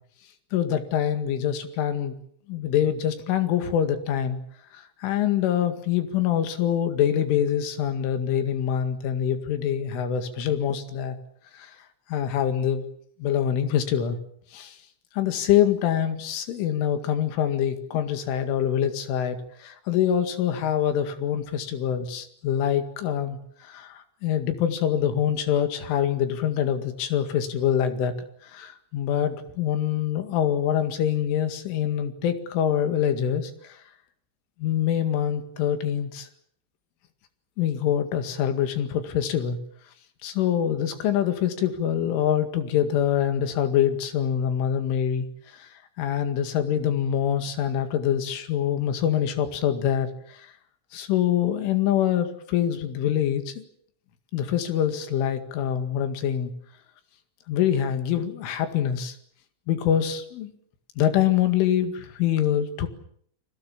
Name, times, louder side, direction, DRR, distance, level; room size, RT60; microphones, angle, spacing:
voice 1, 0.5-2.1 2.5-4.4 4.7-11.2 11.5-11.8 12.1-12.8 13.2-14.2 14.5-14.8 15.1-28.1 28.4-33.8 34.6-36.3 37.6-39.6 40.2-45.3 45.5-50.5 50.9-53.6 54.3-56.5 57.5-59.2 59.7-60.5 61.0-62.9, left 10 dB, 85° left, 8 dB, 4.6 m, -25 dB
30.0 x 21.5 x 7.3 m, 0.64 s
omnidirectional pair, 5.5 m